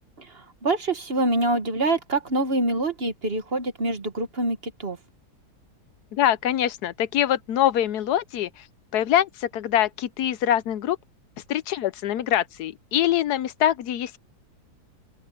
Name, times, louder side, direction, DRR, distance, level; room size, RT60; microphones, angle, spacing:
voice 1, 0.2-5.0, right 2 dB, 40° right, 1.4 m, -25 dB
voice 2, 6.1-8.7 8.9-11.0 11.5-14.2, left 11 dB, 75° left, 1.2 m, -24 dB
open air
omnidirectional pair, 1.8 m